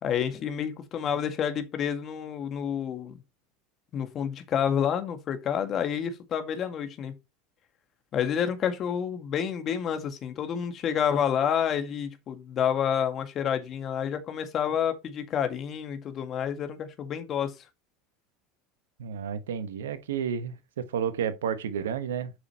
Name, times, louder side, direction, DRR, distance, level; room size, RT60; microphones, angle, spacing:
voice 1, 0.0-3.2 3.9-7.1 8.1-17.5, left 8 dB, 40° left, 1.9 m, -29 dB
voice 2, 19.0-22.3, right 8 dB, 80° right, 1.2 m, -31 dB
7.9 x 6.2 x 3.0 m
hypercardioid pair, 85°, 0 cm